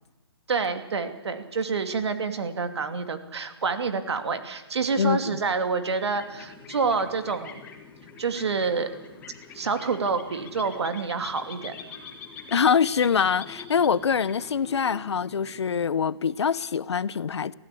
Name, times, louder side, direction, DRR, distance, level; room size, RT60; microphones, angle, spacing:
voice 1, 0.5-7.6 8.2-8.9 9.5-11.7, right 4 dB, 80° right, 2.8 m, -28 dB
voice 2, 5.0-5.4 12.5-17.5, left 6 dB, 90° left, 0.9 m, -24 dB
sound 1, 5.9-16.2, left 5 dB, 10° left, 1.8 m, -45 dB
24.0 x 16.0 x 8.6 m
hypercardioid pair, 170°, 14 cm